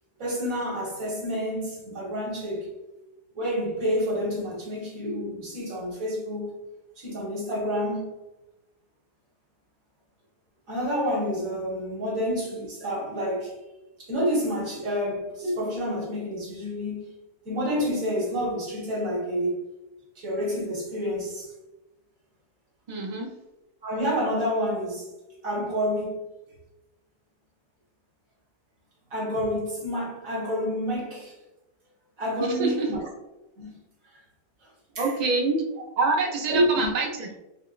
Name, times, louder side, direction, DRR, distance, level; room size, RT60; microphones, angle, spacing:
voice 1, 0.2-2.7 3.3-6.5 7.0-8.1 10.7-13.5 14.0-17.1 17.4-19.6 20.2-21.5 23.8-25.1 25.4-26.2 29.1-31.3 32.2-33.0 33.6-33.8 34.9-35.1 35.8-35.9 36.5-36.9, equal, 60° right, 1.6 m, -28 dB
voice 2, 22.9-23.3 32.4-32.9 35.0-35.6 36.0-37.4, right 3 dB, 85° right, 0.3 m, -26 dB
5.1 x 2.1 x 2.4 m
omnidirectional pair, 1.7 m